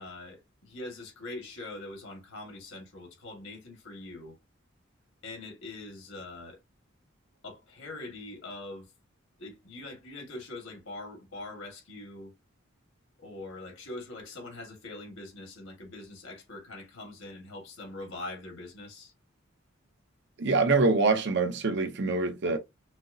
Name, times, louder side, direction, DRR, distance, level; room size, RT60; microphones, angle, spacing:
voice 1, 0.0-4.4 5.2-6.6 7.4-8.9 9.4-12.3 13.2-19.1 22.4-22.6, left 2 dB, 80° left, 1.9 m, -43 dB
voice 2, 20.4-22.6, right 3 dB, 60° right, 0.7 m, -25 dB
5.9 x 2.0 x 2.7 m
head